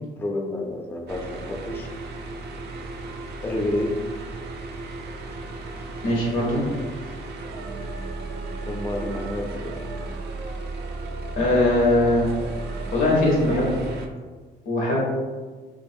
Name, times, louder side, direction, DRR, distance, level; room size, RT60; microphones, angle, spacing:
voice 1, 0.2-1.9 3.4-4.0 8.7-9.8, left 1 dB, 10° left, 1 dB, 0.3 m, -29 dB
sound 1, 1.1-14.1, right 3 dB, 55° right, 0.4 m, -34 dB
voice 2, 6.0-6.6 11.4-12.3 12.9-13.8 14.7-15.0, left 1 dB, 85° left, -3 dB, 0.9 m, -20 dB
2.5 x 2.3 x 2.6 m, 1.4 s
cardioid pair, 90°, 20 cm